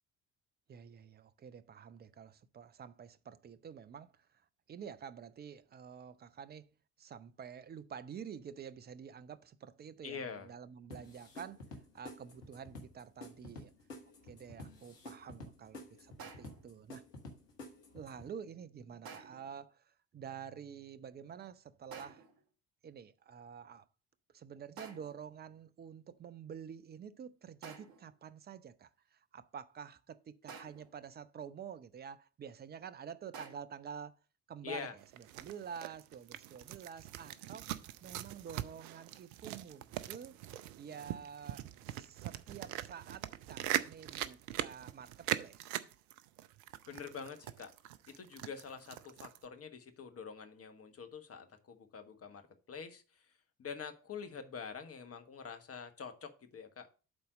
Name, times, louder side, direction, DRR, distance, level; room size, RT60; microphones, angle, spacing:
voice 1, 0.7-4.3 4.7-6.7 7.0-11.6 11.9-13.7 14.2-17.0 17.9-22.2 22.8-23.9 24.3-34.2 34.5-34.9 35.2-37.7 38.0-40.4 40.8-45.8, right 7 dB, 20° right, 0.5 m, -49 dB
voice 2, 10.0-10.5 34.6-34.9 46.9-47.7 48.1-52.4 52.7-53.3 53.6-56.9, left 6 dB, 30° left, 1.3 m, -46 dB
sound 1, 10.9-18.3, left 2 dB, 80° left, 1.4 m, -51 dB
sound 2, 16.2-16.7 19.1-19.6 21.9-22.4 24.8-25.3 27.6-28.1 30.5-31.0 33.3-33.6, right 6 dB, 45° right, 1.3 m, -51 dB
sound 3, 35.0-49.5, right 13 dB, 65° right, 0.6 m, -42 dB
7.8 x 4.1 x 6.1 m
figure-of-eight pair, 50°, 48 cm